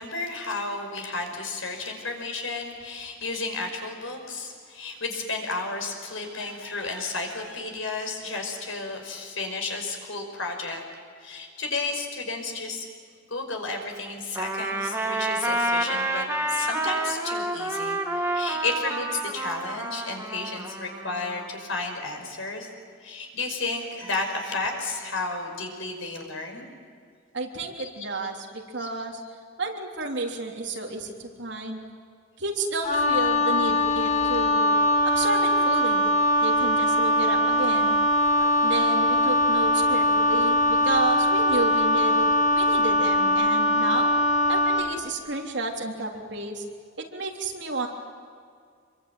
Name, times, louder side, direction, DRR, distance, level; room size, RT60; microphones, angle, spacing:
voice 1, 0.0-10.8 11.2-12.9 13.3-22.7 23.0-26.7 27.8-27.9 28.8-28.9, left 3 dB, 75° left, 3 dB, 5.4 m, -32 dB
Trumpet, 14.3-21.5, right 2 dB, 10° right, 1.9 m, -29 dB
voice 2, 27.3-29.2 29.6-31.8 32.4-34.8 35.0-36.0 36.4-38.0 38.4-44.1 44.5-46.7 47.0-47.9, right 2 dB, 60° right, 1 dB, 3.4 m, -31 dB
Wind instrument woodwind instrument, 32.8-44.9, left 1 dB, 35° left, 2.6 m, -22 dB
26.5 x 23.0 x 9.2 m, 2.1 s
head